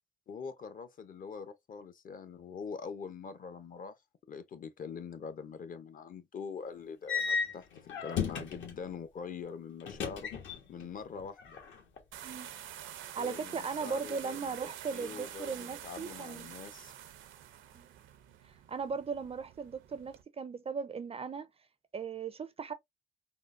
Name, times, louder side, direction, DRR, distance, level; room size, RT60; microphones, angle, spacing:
voice 1, 0.3-4.0 4.3-7.7 8.0-10.3 10.7-11.6 13.2-14.5 14.9-16.9, left 6 dB, 45° left, 0.6 m, -43 dB
sound 1, 7.1-8.8 9.8-10.9 11.2-12.0, left 6 dB, 70° left, 1.1 m, -35 dB
sound 2, 12.1-20.2, right 11 dB, 80° right, 0.5 m, -47 dB
voice 2, 13.1-16.5 17.7-17.9 18.4-21.5 21.9-22.7, right 5 dB, 30° right, 0.4 m, -38 dB
3.7 x 2.1 x 2.4 m
cardioid pair, 90°, 20 cm